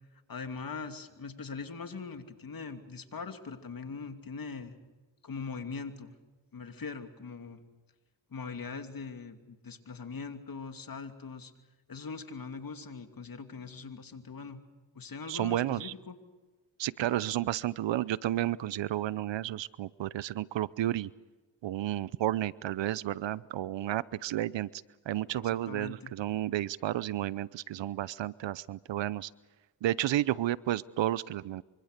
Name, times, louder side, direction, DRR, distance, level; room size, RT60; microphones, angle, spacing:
voice 1, 0.3-4.8 5.2-6.2 6.5-7.6 8.3-11.5 11.9-14.6 14.9-16.1 25.3-26.1, left 5 dB, 50° left, 7 dB, 2.8 m, -41 dB
voice 2, 15.3-15.9 16.8-21.1 21.6-29.3 29.8-31.6, right 13 dB, 80° right, 20 dB, 0.8 m, -32 dB
25.5 x 25.0 x 6.7 m, 1.2 s
cardioid pair, 65°, 44 cm